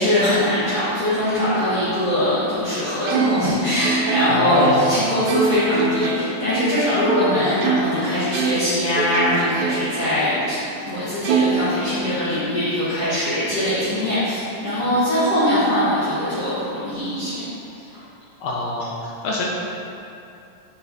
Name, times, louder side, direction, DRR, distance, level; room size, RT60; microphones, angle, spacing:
voice 1, 0.0-17.5 17.9-18.0, left 1 dB, 50° left, -15 dB, 2.5 m, -22 dB
Plucked string instrument, 3.1-8.0 8.3-10.1 10.5-10.6 11.3-12.4, right 4 dB, 80° right, 2.0 m, -24 dB
voice 2, 4.3-5.0 18.4-19.5, left 1 dB, 75° left, -4 dB, 2.0 m, -24 dB
7.7 x 4.6 x 4.1 m, 2.7 s
omnidirectional pair, 3.8 m